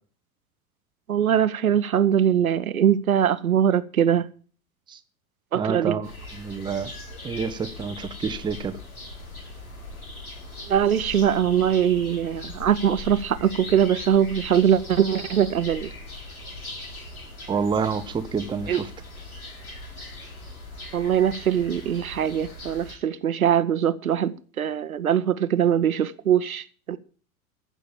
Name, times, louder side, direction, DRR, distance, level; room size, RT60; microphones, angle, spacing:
voice 1, 1.1-4.3 5.5-6.0 10.7-15.9 18.7-18.8 20.9-27.0, right 9 dB, 70° right, 1.0 m, -22 dB
voice 2, 5.5-6.9 7.2-8.8 17.5-18.9, right 6 dB, 10° right, 0.8 m, -28 dB
sound 1, 6.0-22.9, left 2 dB, 75° left, 6.7 m, -39 dB
14.5 x 6.2 x 8.7 m
figure-of-eight pair, 85°, 44 cm